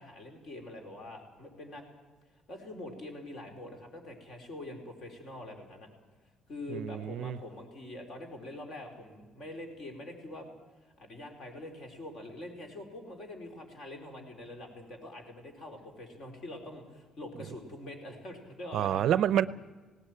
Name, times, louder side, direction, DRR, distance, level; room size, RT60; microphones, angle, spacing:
voice 1, 0.0-1.8 2.5-5.9 6.5-10.5 10.8-19.0, left 1 dB, 45° left, 4 dB, 4.6 m, -44 dB
voice 2, 6.7-7.4 18.7-19.5, right 11 dB, 55° right, 17 dB, 0.6 m, -28 dB
19.0 x 18.0 x 9.4 m, 1.3 s
cardioid pair, 160°, 0 cm